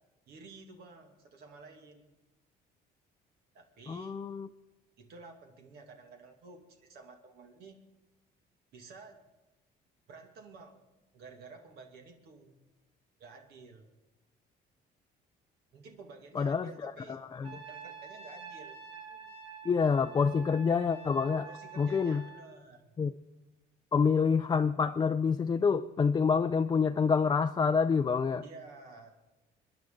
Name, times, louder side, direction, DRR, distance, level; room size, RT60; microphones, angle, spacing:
voice 1, 0.3-2.0 3.5-4.2 5.0-7.8 8.7-9.2 10.1-10.8 11.1-12.6 13.2-13.9 15.7-17.2 17.5-18.8 19.1-19.3 21.4-22.8 28.4-29.1, right 4 dB, 70° right, 3 dB, 2.2 m, -52 dB
voice 2, 3.9-4.5 16.3-17.5 19.6-21.5 21.8-22.2 23.0-23.1 23.9-28.4, left 5 dB, 25° left, 7 dB, 0.5 m, -27 dB
Trumpet, 17.4-22.5, right 6 dB, 35° right, 3.4 m, -48 dB
26.0 x 10.5 x 3.8 m, 1.1 s
cardioid pair, 110°, 17 cm